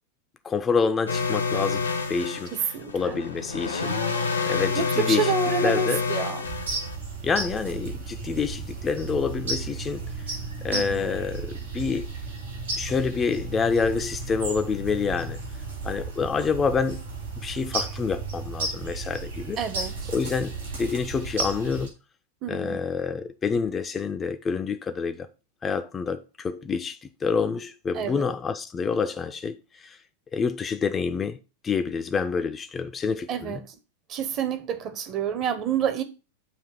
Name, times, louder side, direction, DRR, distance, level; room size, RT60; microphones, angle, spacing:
voice 1, 0.4-2.6 2.9-4.0 4.5-5.3 5.6-6.0 7.2-10.1 10.6-12.1 12.8-15.4 15.8-17.0 17.4-19.6 20.1-21.9 22.5-25.3 25.6-29.6 29.8-30.0 30.3-31.4 31.6-33.6, left 5 dB, 20° left, 0.5 m, -27 dB
sound 1, 1.1-7.0, left 4 dB, 80° left, 0.9 m, -28 dB
voice 2, 2.5-3.2 4.8-6.5 10.7-11.1 19.6-20.1 22.4-22.8 27.9-28.3 33.3-33.7 34.1-36.0, right 7 dB, 35° right, 0.8 m, -28 dB
sound 2, 6.4-21.9, right 3 dB, 70° right, 3.1 m, -34 dB
6.9 x 2.8 x 5.6 m
figure-of-eight pair, 90°, 0 cm